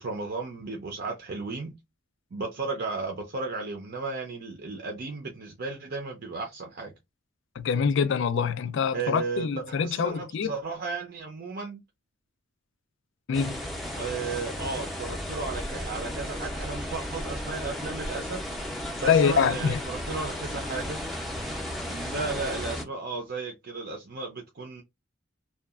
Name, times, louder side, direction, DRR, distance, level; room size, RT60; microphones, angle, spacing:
voice 1, 0.0-1.7 2.3-6.9 8.9-11.8 13.9-21.0 21.9-24.8, right 4 dB, 50° right, 0.5 m, -34 dB
voice 2, 7.6-10.5 13.3-13.5 19.1-19.8, left 6 dB, 65° left, 0.3 m, -25 dB
sound 1, 13.3-22.8, equal, ahead, 0.5 m, -34 dB
2.7 x 2.3 x 2.4 m
head